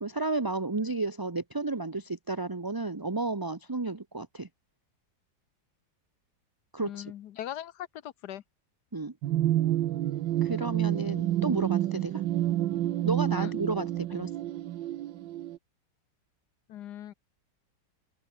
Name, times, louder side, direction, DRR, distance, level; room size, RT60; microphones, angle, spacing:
voice 1, 0.0-4.5 6.7-7.1 8.9-9.1 10.4-12.2 13.0-14.3, right 3 dB, 20° right, 0.6 m, -32 dB
voice 2, 6.8-8.4 13.4-13.5 16.7-17.1, left 11 dB, 65° left, 1.3 m, -40 dB
sound 1, 9.2-15.6, right 13 dB, 90° right, 1.5 m, -29 dB
open air
omnidirectional pair, 2.0 m